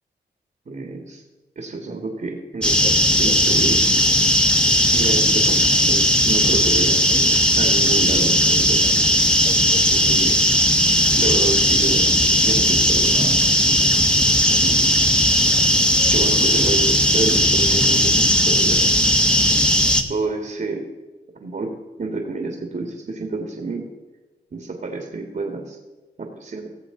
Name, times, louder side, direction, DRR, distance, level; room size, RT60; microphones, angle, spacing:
voice 1, 0.7-1.2 1.6-3.9 4.9-9.0 9.9-10.4 11.1-12.1 12.4-13.8 14.6-14.9 16.1-19.0 20.1-20.9 21.4-23.9 24.5-25.8 26.2-26.7, right 3 dB, 50° right, 2 dB, 1.8 m, -29 dB
sound 1, 2.6-20.0, equal, 5° left, 1.1 m, -17 dB
17.0 x 6.9 x 3.8 m, 1.2 s
cardioid pair, 50°, 18 cm